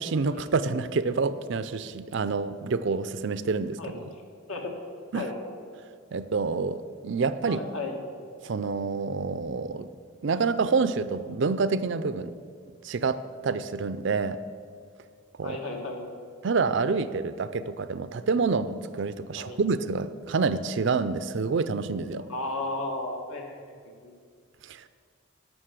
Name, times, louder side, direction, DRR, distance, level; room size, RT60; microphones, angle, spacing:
voice 1, 0.0-3.8 5.1-5.3 6.1-7.6 8.4-9.9 10.2-12.3 12.8-14.4 15.4-15.6 16.4-22.3 24.6-24.8, right 4 dB, 55° right, 13 dB, 0.4 m, -27 dB
voice 2, 7.4-8.0 10.3-10.5 15.4-16.0 19.4-19.6 22.3-23.6 24.0-24.1, left 2 dB, 75° left, 1 dB, 1.8 m, -34 dB
11.5 x 6.4 x 7.5 m, 2.1 s
head